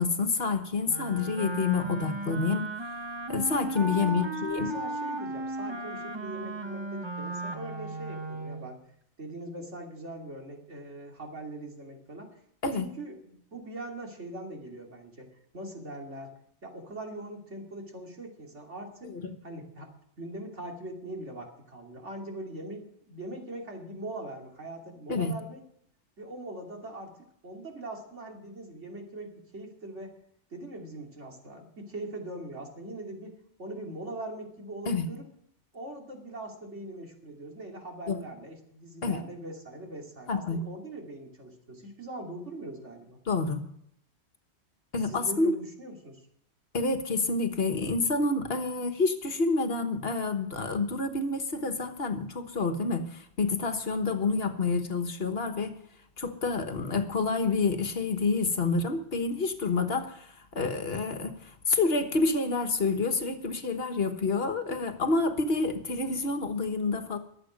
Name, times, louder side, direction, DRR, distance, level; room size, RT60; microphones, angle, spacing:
voice 1, 0.0-2.7 3.3-4.7 12.6-12.9 19.0-19.4 25.1-25.3 34.8-35.1 38.1-38.2 39.0-39.2 40.3-40.6 43.3-43.6 44.9-45.5 46.7-55.8 56.2-67.2, left 3 dB, 60° left, 7 dB, 1.5 m, -28 dB
Wind instrument woodwind instrument, 0.9-8.7, right 2 dB, 25° right, 1.0 m, -36 dB
voice 2, 3.8-8.8 9.2-12.4 12.7-15.3 15.5-16.3 16.6-19.1 19.4-25.6 26.2-27.1 27.4-30.1 30.5-35.3 35.7-43.2 45.0-46.2, right 1 dB, 75° right, 1 dB, 3.1 m, -41 dB
22.5 x 8.1 x 5.2 m, 0.70 s
omnidirectional pair, 1.2 m